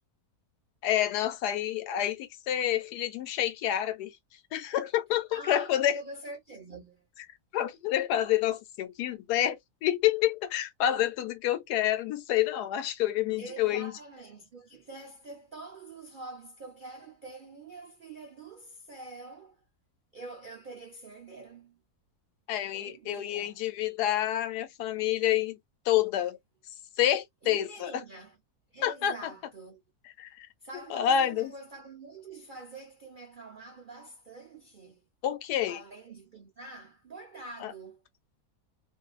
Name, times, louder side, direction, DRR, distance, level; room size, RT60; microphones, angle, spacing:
voice 1, 0.8-4.1 4.5-6.0 7.5-13.9 22.5-25.6 25.9-26.4 27.0-28.0 28.8-29.1 30.2-30.5 30.9-31.5 35.2-35.8 37.6-37.7, left 11 dB, 80° left, 1.2 m, -28 dB
voice 2, 5.3-7.1 13.4-19.6 20.1-21.8 22.7-23.6 27.4-28.4 28.7-29.8 30.6-35.0 35.7-38.0, right 3 dB, 65° right, 0.5 m, -46 dB
2.6 x 2.5 x 2.3 m
omnidirectional pair, 1.7 m